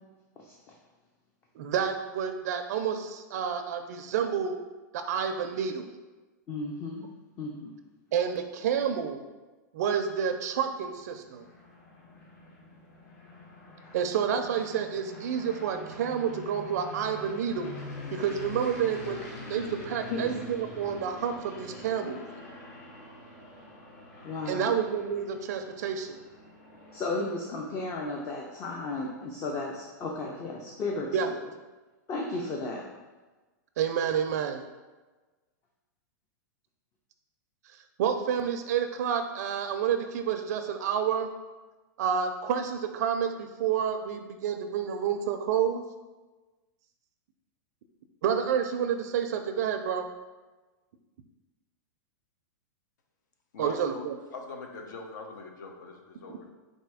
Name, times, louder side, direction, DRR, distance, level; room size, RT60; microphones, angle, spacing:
voice 1, 1.6-4.6 4.9-5.9 8.1-9.2 9.7-11.4 13.9-17.7 18.1-19.2 19.5-22.2 24.5-26.2 31.1-31.3 33.8-34.6 38.0-41.3 42.0-45.8 48.2-50.0 53.6-54.1, right 8 dB, 60° right, 7 dB, 0.4 m, -29 dB
voice 2, 6.5-7.0 7.4-7.7 20.1-20.2 24.2-24.7 26.9-31.1 31.4-31.5 32.1-32.8, left 2 dB, 25° left, -1 dB, 0.5 m, -34 dB
sound 1, 10.5-27.7, left 2 dB, 45° left, 1.1 m, -45 dB
voice 3, 53.5-56.5, left 4 dB, 75° left, 3 dB, 0.8 m, -43 dB
4.2 x 2.6 x 4.7 m, 1.2 s
supercardioid pair, 155°, 10 cm